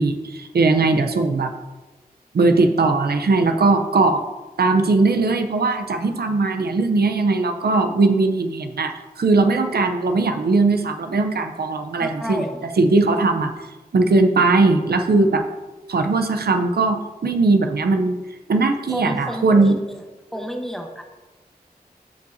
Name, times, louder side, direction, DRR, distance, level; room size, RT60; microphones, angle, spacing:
voice 1, 0.0-1.5 2.3-4.2 4.6-12.4 12.8-13.5 13.9-15.4 15.9-18.2 18.5-19.8, right 3 dB, 85° right, 6 dB, 0.6 m, -19 dB
voice 2, 12.0-12.6 18.9-20.0 20.3-21.0, equal, ahead, 3 dB, 1.0 m, -30 dB
12.5 x 5.5 x 2.7 m, 1.2 s
wide cardioid pair, 80°, 16 cm